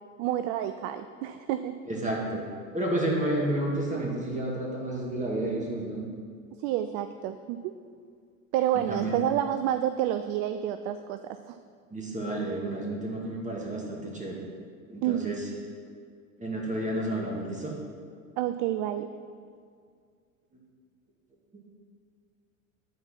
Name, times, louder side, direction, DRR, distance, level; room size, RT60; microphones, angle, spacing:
voice 1, 0.2-1.8 6.6-7.8 8.5-11.6 15.0-15.4 18.4-19.1, right 11 dB, 50° right, 10 dB, 0.4 m, -29 dB
voice 2, 1.9-2.4 2.7-6.0 8.7-9.2 11.9-14.4 14.9-15.5 16.4-17.8 21.5-21.6, right 1 dB, 15° right, -2 dB, 2.2 m, -31 dB
9.6 x 4.4 x 6.0 m, 2.1 s
hypercardioid pair, 75°, 42 cm